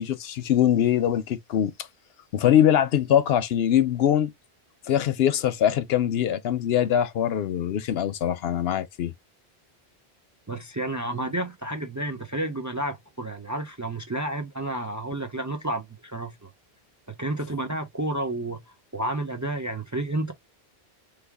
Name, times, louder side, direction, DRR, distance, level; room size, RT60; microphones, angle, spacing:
voice 1, 0.0-1.7 2.3-4.3 4.9-9.1, left 10 dB, 75° left, 0.8 m, -22 dB
voice 2, 10.5-16.5 17.1-18.6 18.9-20.3, right 1 dB, 25° right, 0.4 m, -30 dB
3.3 x 2.2 x 3.5 m
omnidirectional pair, 1.1 m